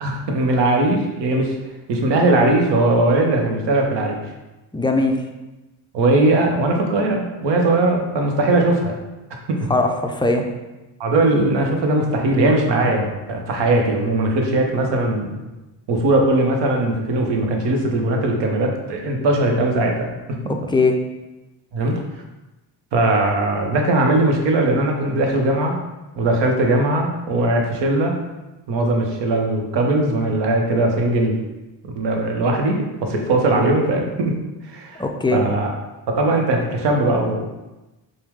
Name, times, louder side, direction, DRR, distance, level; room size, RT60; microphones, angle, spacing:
voice 1, 0.0-1.6 1.9-4.2 5.9-9.0 9.5-9.7 11.0-15.4 15.9-20.5 21.7-22.0 22.9-25.8 26.2-28.1 28.7-31.4 31.9-34.4 34.6-35.0 35.3-35.7 36.1-37.5, right 2 dB, 75° right, 2 dB, 0.8 m, -19 dB
voice 2, 4.7-5.2 9.7-10.4 20.5-21.0 35.0-35.4, left 3 dB, 10° left, 3 dB, 0.3 m, -19 dB
4.5 x 2.1 x 3.5 m, 1.1 s
cardioid pair, 75°, 43 cm